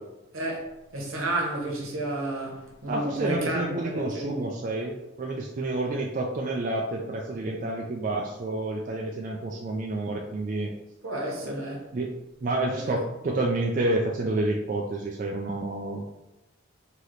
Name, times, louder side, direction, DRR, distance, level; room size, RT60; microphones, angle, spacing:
voice 1, 0.3-4.4 11.0-11.8 12.7-12.9, right 1 dB, 75° right, 1.0 m, -32 dB
voice 2, 2.9-10.7 11.4-11.7 11.9-12.1 12.4-16.0, right 2 dB, 40° right, 0.3 m, -29 dB
3.9 x 2.9 x 3.2 m
head